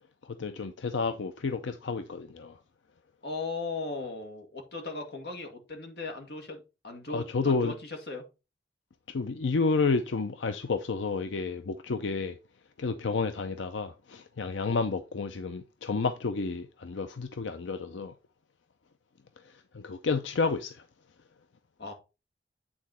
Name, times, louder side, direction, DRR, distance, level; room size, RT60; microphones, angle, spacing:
voice 1, 0.4-2.5 7.1-7.7 9.1-12.3 12.8-18.1 19.7-20.8, left 4 dB, 90° left, 0.6 m, -30 dB
voice 2, 3.2-8.2 21.8-21.9, left 3 dB, 60° left, 1.9 m, -37 dB
8.8 x 4.2 x 4.3 m
head